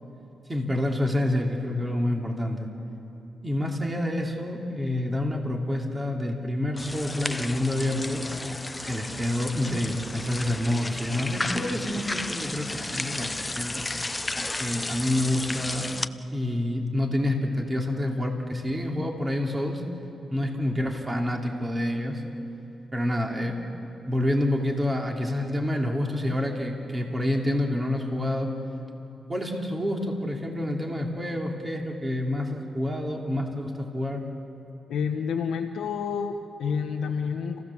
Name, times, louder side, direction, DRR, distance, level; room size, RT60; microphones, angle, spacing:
voice 1, 0.5-2.7 3.4-8.2 8.9-13.8 14.6-15.9 16.3-19.8 20.3-22.2 22.9-23.7 24.0-28.5 29.3-34.2, left 1 dB, 20° right, 1 dB, 2.7 m, -28 dB
sound 1, 6.8-16.1, left 2 dB, 20° left, 0.6 m, -33 dB
voice 2, 34.9-37.6, left 6 dB, 85° left, 1 dB, 0.9 m, -29 dB
28.5 x 16.0 x 7.2 m, 2.8 s
cardioid pair, 75°, 0 cm